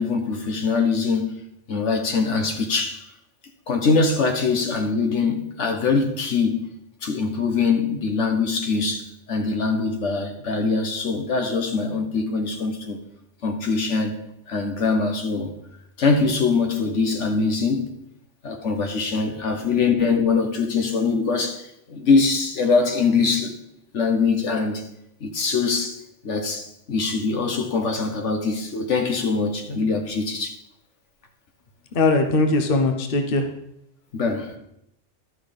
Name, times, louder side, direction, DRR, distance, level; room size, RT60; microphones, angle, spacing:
voice 1, 0.0-1.4 1.7-3.0 3.7-6.6 7.0-13.0 13.4-15.5 16.0-17.9 18.4-23.6 23.9-24.9 25.2-30.6 34.1-34.6, left 4 dB, 75° left, 1.4 m, -23 dB
voice 2, 31.9-33.5, left 2 dB, 50° left, 1.1 m, -20 dB
12.0 x 6.2 x 5.2 m
omnidirectional pair, 1.3 m